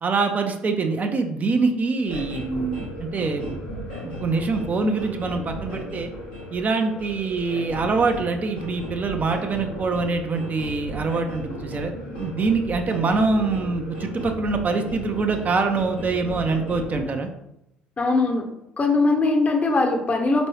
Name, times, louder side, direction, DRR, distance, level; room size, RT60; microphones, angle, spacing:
voice 1, 0.0-3.6 4.0-6.1 6.5-17.3, right 4 dB, 35° right, 5 dB, 0.5 m, -24 dB
sound 1, 2.0-17.0, equal, 80° left, 1.0 m, -35 dB
voice 2, 18.0-18.5 18.8-20.5, left 3 dB, 30° left, 4 dB, 0.8 m, -20 dB
4.4 x 3.0 x 3.0 m, 0.84 s
figure-of-eight pair, 55°, 5 cm